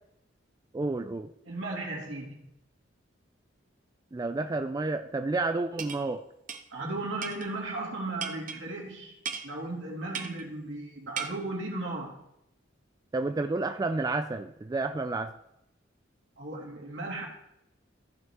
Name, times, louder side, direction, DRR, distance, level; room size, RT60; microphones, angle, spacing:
voice 1, 0.7-1.3 4.1-6.2 13.1-15.3, right 3 dB, 20° right, 7 dB, 0.3 m, -30 dB
voice 2, 1.4-2.4 6.7-9.2 9.4-12.2 16.4-17.3, right 2 dB, 80° right, -2 dB, 2.5 m, -36 dB
sound 1, 5.8-6.0 6.5-6.6 7.2-7.5 8.2-8.6 9.3-9.5 10.1-10.4 11.2-11.3, right 6 dB, 45° right, 0.7 m, -36 dB
14.5 x 5.5 x 3.6 m, 0.81 s
head